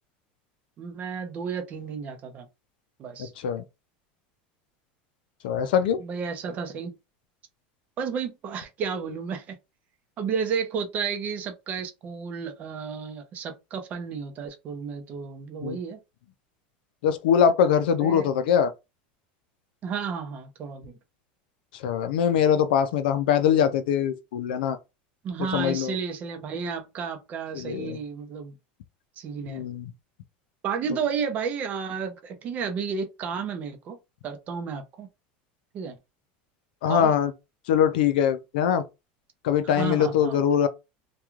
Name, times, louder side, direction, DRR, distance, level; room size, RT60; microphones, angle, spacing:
voice 1, 0.8-2.5 3.0-3.3 6.0-7.0 8.0-9.6 10.2-16.0 18.0-18.3 19.8-21.0 25.2-28.6 29.2-29.6 30.6-34.0 34.2-35.1 35.7-36.0 36.9-37.1 39.6-40.4, right 6 dB, 30° right, 0.6 m, -32 dB
voice 2, 3.2-3.6 5.4-6.0 15.6-15.8 17.0-18.7 21.7-24.8 25.5-26.0 27.5-28.0 29.5-29.9 36.8-37.3 37.7-38.8 39.4-40.7, left 8 dB, 85° left, 0.4 m, -22 dB
3.0 x 2.3 x 2.4 m
supercardioid pair, 160°, 5 cm